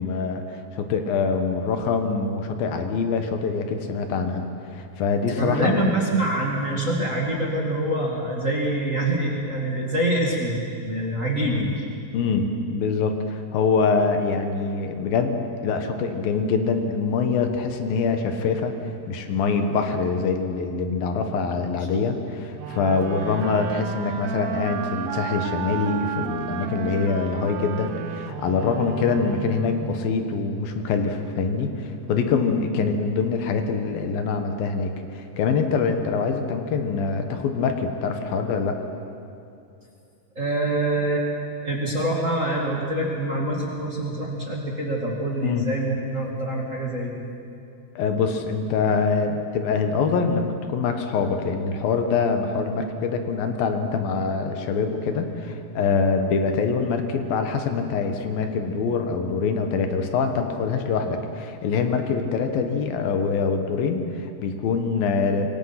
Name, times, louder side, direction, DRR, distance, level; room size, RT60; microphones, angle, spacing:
voice 1, 0.0-5.9 11.4-11.7 12.1-18.8 19.1-38.8 45.4-45.7 48.0-65.5, left 5 dB, 65° left, 6 dB, 2.9 m, -24 dB
voice 2, 5.4-10.6 10.8-11.8 40.3-41.3 41.6-47.2, right 1 dB, 30° right, -2 dB, 1.5 m, -25 dB
sound 1, 22.6-30.0, right 8 dB, 75° right, 2.6 m, -32 dB
26.0 x 23.0 x 5.9 m, 2.6 s
omnidirectional pair, 5.1 m